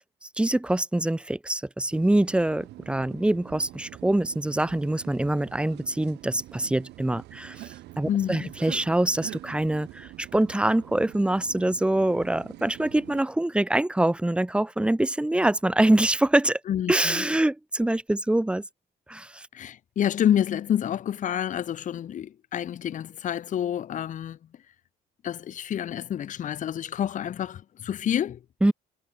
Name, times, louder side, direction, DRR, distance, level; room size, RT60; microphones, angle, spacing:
voice 1, 0.4-16.6 16.9-18.6 19.1-19.5 28.6-28.7, right 1 dB, 5° right, 0.8 m, -24 dB
sound 1, 1.9-13.2, right 17 dB, 80° right, 6.5 m, -45 dB
voice 2, 8.1-8.5 16.7-17.2 19.5-24.4 25.2-28.4, left 10 dB, 50° left, 1.2 m, -28 dB
cardioid pair, 110°, 17 cm